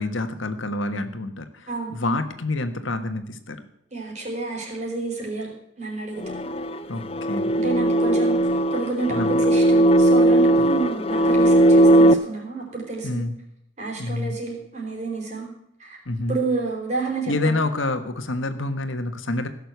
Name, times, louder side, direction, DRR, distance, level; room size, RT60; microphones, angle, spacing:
voice 1, 0.0-3.6 6.9-7.5 9.1-9.4 13.0-13.4 14.0-14.4 16.0-16.4 17.3-19.5, left 2 dB, 85° left, 8 dB, 1.5 m, -27 dB
voice 2, 3.9-5.5 5.8-6.3 7.5-8.4 8.7-13.3 13.8-15.5 15.8-16.0 16.3-17.6, right 3 dB, 35° right, -1 dB, 4.4 m, -29 dB
sound 1, 6.2-12.1, right 1 dB, 30° left, 0.5 m, -18 dB
16.5 x 6.8 x 8.0 m, 0.77 s
head